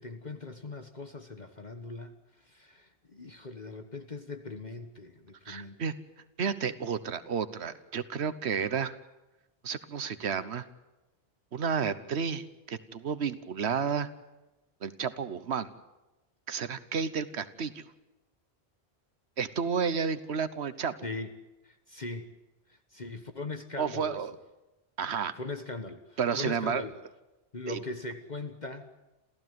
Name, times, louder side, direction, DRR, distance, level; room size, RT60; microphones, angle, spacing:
voice 1, 0.0-2.2 2.4-5.8 21.0-21.3 21.6-22.3 22.7-24.2 25.4-26.9 27.5-28.9, left 3 dB, 45° left, 8 dB, 1.5 m, -40 dB
voice 2, 5.5-5.9 6.4-9.0 9.6-10.7 11.5-14.1 14.8-15.7 16.5-17.9 19.4-20.9 23.8-24.3 25.0-25.3 26.2-26.9 27.7-27.8, right 6 dB, 85° right, 13 dB, 1.3 m, -31 dB
28.0 x 15.5 x 9.4 m, 1.0 s
omnidirectional pair, 1.1 m